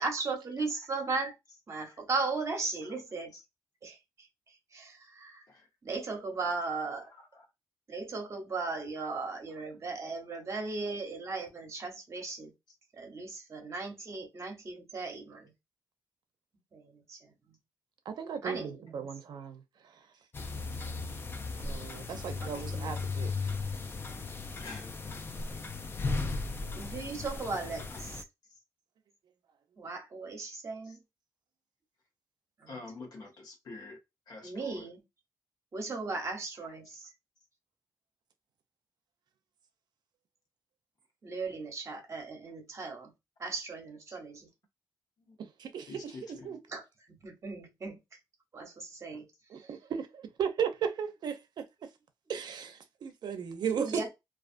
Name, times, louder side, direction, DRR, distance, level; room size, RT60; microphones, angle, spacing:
voice 1, 0.0-1.3 1.7-3.3 3.8-4.0 4.7-5.4 5.8-7.0 7.9-12.5 12.9-15.5 16.7-17.2 18.4-19.1 22.4-22.9 24.1-24.2 26.7-28.2 29.8-31.0 32.6-32.8 34.4-35.0 35.7-37.1 41.2-43.1 43.4-44.5 46.7-46.8 47.1-48.0 48.5-49.3 53.7-54.1, right 3 dB, 40° right, 0.9 m, -37 dB
voice 2, 7.0-7.5 9.0-9.1 9.5-9.6 24.6-24.9 27.9-28.0 30.8-31.0 32.7-34.0 34.3-34.9 36.8-37.0 44.1-44.2 45.2-45.4 45.9-46.5 49.1-49.2, left 3 dB, 65° left, 0.9 m, -48 dB
voice 3, 18.1-19.6 21.6-23.5 45.4-46.6 49.5-51.9 52.3-54.1, right 7 dB, 75° right, 0.5 m, -36 dB
sound 1, 20.3-28.2, left 3 dB, 30° left, 0.3 m, -36 dB
2.4 x 2.3 x 2.5 m
wide cardioid pair, 115°, 7 cm